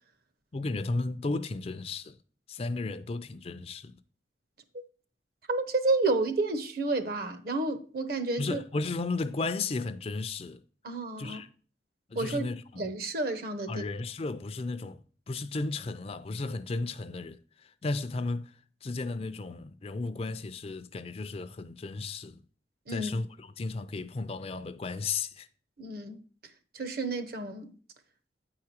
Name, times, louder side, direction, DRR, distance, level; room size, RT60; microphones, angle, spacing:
voice 1, 0.5-2.2 2.5-4.0 8.4-10.6 11.2-11.5 12.1-12.8 13.7-18.5 18.8-22.4 22.9-25.5, left 3 dB, 30° left, 0.4 m, -34 dB
voice 2, 5.5-8.6 10.8-11.4 12.1-12.4 12.8-13.9 22.9-23.1 25.8-26.2 26.7-27.7, right 3 dB, 55° right, 0.9 m, -30 dB
8.7 x 4.8 x 4.3 m
head